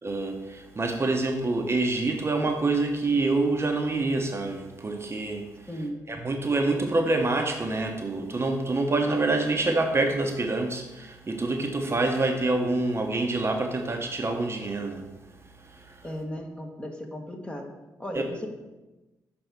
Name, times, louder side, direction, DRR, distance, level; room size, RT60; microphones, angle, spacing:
voice 1, 0.0-5.7 6.1-15.1 15.5-16.0 18.1-18.2, right 2 dB, 35° right, 4 dB, 0.8 m, -26 dB
voice 2, 5.7-6.0 16.0-17.7 18.0-18.5, equal, 15° left, 2 dB, 1.3 m, -35 dB
6.3 x 3.5 x 5.9 m, 1.1 s
hypercardioid pair, 45°, 8 cm